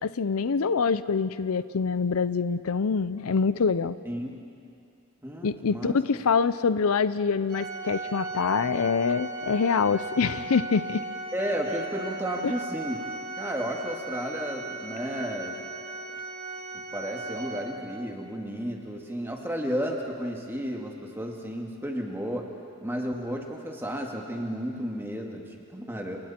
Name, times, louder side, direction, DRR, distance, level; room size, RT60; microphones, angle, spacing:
voice 1, 0.0-4.0 5.4-11.0 12.4-12.5, left 5 dB, 75° left, 14 dB, 0.5 m, -25 dB
voice 2, 4.1-4.4 5.2-6.0 11.3-13.0 13.4-15.6 16.9-22.5 22.8-26.2, equal, 10° right, 0 dB, 2.3 m, -32 dB
Organ, 7.5-18.1, right 2 dB, 45° right, 2.9 m, -37 dB
29.0 x 27.5 x 4.4 m, 2.5 s
head